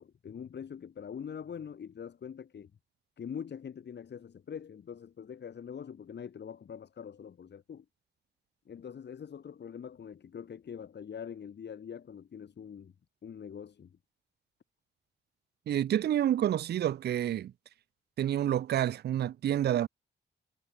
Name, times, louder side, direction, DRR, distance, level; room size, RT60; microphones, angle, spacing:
voice 1, 0.0-2.7 3.2-7.9 8.7-12.9 13.2-14.0, left 7 dB, 60° left, 7.4 m, -43 dB
voice 2, 15.7-17.5 18.2-19.9, right 11 dB, 55° right, 0.4 m, -28 dB
wide cardioid pair, 165°, 20 cm